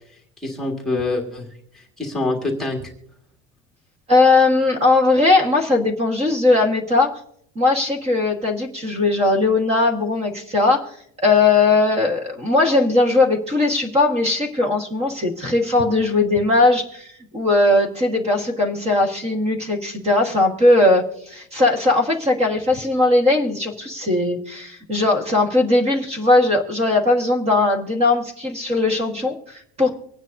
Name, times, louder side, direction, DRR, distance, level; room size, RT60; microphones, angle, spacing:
voice 1, 0.4-1.4 1.7-2.9, left 2 dB, ahead, -2 dB, 1.8 m, -25 dB
voice 2, 4.1-7.2 7.5-10.9 11.2-29.9, left 2 dB, 20° right, 3 dB, 1.4 m, -19 dB
25.0 x 9.3 x 2.6 m, 0.71 s
cardioid pair, 175°, 32 cm